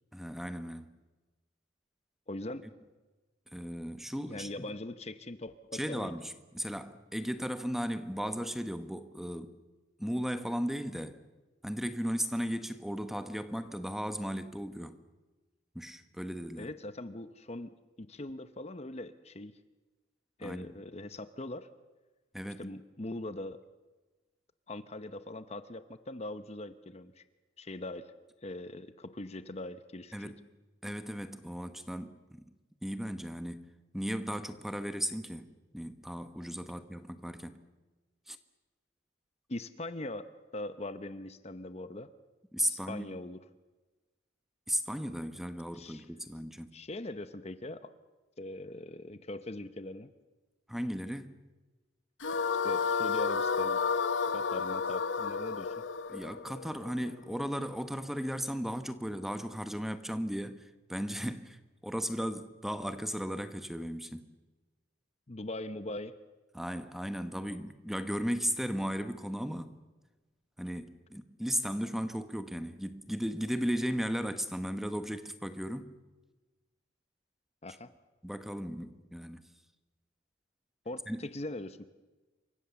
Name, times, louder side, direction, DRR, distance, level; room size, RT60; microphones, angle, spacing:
voice 1, 0.1-0.9 3.5-4.7 5.7-9.5 10.0-11.2 11.6-15.0 15.7-16.7 20.4-20.7 22.3-22.7 30.1-30.4 30.8-32.4 32.8-33.7 33.9-37.6 38.3-38.4 42.5-43.1 44.7-46.7 50.7-51.4 56.1-61.6 61.8-64.3 66.5-69.8 70.6-75.9 78.2-79.5 81.1-81.2, equal, ahead, 1.2 m, -36 dB
voice 2, 2.3-2.6 4.3-6.1 16.6-17.7 18.0-19.5 20.4-21.7 22.6-23.6 24.7-27.2 27.6-28.1 28.4-30.3 39.5-42.1 42.7-43.4 45.7-46.1 46.7-47.9 48.4-50.1 52.6-53.8 54.3-55.8 65.3-66.1 77.6-77.9 80.8-81.9, left 2 dB, 35° left, 0.8 m, -41 dB
sound 1, 52.2-57.4, left 5 dB, 80° left, 1.0 m, -31 dB
28.0 x 24.5 x 7.0 m
head